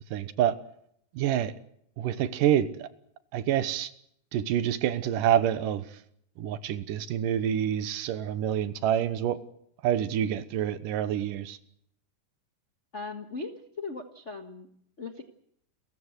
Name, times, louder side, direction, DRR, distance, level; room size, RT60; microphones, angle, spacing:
voice 1, 0.1-0.6 1.2-1.5 2.0-2.9 3.3-3.9 4.3-5.8 6.4-9.4 9.8-11.6, right 10 dB, 80° right, 15 dB, 2.7 m, -27 dB
voice 2, 12.9-14.7 15.0-15.2, left 4 dB, 45° left, 6 dB, 0.9 m, -38 dB
29.5 x 15.0 x 8.0 m, 0.70 s
omnidirectional pair, 3.9 m